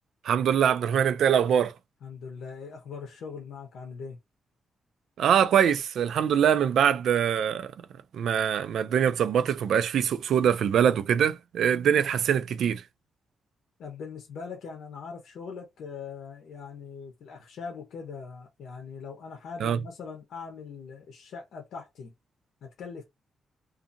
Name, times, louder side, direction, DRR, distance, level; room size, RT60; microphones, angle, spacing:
voice 1, 0.2-1.7 5.2-7.7 8.1-12.8 19.6-19.8, right 8 dB, 65° right, 0.3 m, -23 dB
voice 2, 2.0-4.2 13.8-22.1 22.6-23.0, left 5 dB, 75° left, 0.7 m, -41 dB
2.7 x 2.5 x 2.5 m
wide cardioid pair, 175°, 0 cm